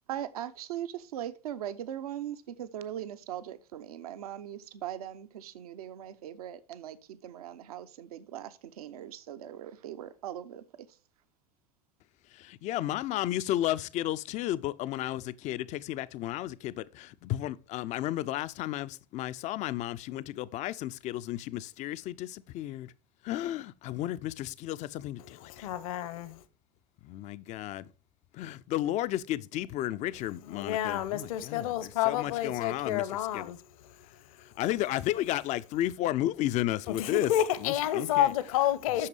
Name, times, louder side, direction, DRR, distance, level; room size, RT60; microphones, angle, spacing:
voice 1, 0.1-11.0, right 11 dB, 60° right, 0.8 m, -40 dB
voice 2, 12.6-22.9 23.2-25.7 27.0-27.9 28.3-33.5 34.6-37.3 37.6-38.3 39.0-39.1, left 14 dB, 35° left, 0.5 m, -33 dB
voice 3, 25.5-26.4 30.5-33.6 37.0-39.1, left 12 dB, 55° left, 0.9 m, -29 dB
8.5 x 6.5 x 4.8 m
figure-of-eight pair, 75°, 21 cm